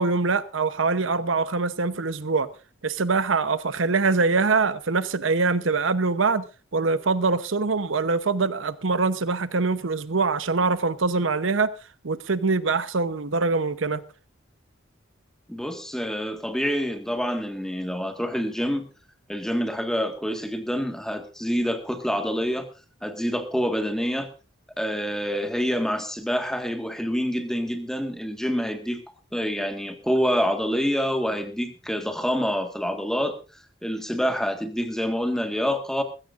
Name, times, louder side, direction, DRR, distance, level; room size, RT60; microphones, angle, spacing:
voice 1, 0.0-2.5 2.8-6.5 6.7-11.7 12.0-14.0, right 4 dB, 80° right, 0.9 m, -23 dB
voice 2, 15.5-18.9 19.3-22.7 23.0-24.3 24.8-29.0 29.3-33.4 33.8-36.0, equal, 5° left, 1.7 m, -27 dB
20.0 x 16.0 x 2.6 m
head